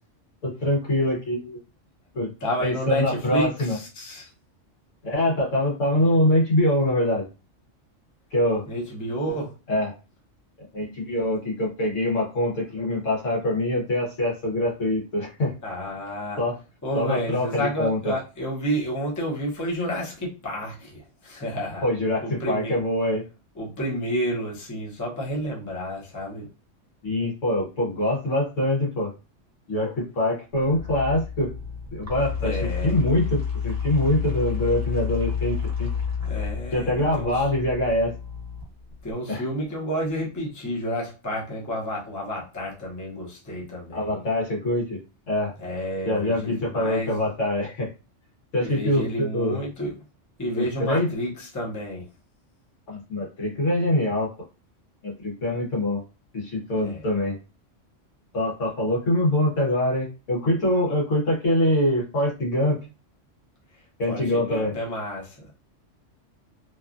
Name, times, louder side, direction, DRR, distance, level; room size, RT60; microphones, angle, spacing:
voice 1, 0.4-1.6 2.1-2.3 2.6-3.8 5.0-7.3 8.3-8.6 9.7-9.9 10.7-15.5 16.4-16.6 16.9-18.1 21.8-23.2 27.0-29.1 29.7-31.5 31.9-32.6 32.8-35.9 36.7-38.1 39.3-39.4 43.9-45.0 45.3-45.5 46.0-47.9 48.5-49.6 50.6-51.1 52.9-54.3 55.0-56.0 56.3-57.4 58.3-62.8 64.0-64.7, left 1 dB, 75° left, -3 dB, 1.4 m, -24 dB
voice 2, 2.4-4.3 8.7-9.5 15.6-16.4 16.8-21.9 22.2-22.8 23.6-26.5 32.4-33.0 36.2-37.4 39.0-44.2 45.6-47.2 48.6-49.9 50.4-52.0 56.8-57.1 64.1-65.5, equal, 20° left, -3 dB, 0.7 m, -30 dB
sound 1, 30.5-39.1, left 7 dB, 20° right, 0.6 m, -30 dB
3.0 x 2.3 x 2.5 m, 0.31 s
omnidirectional pair, 1.3 m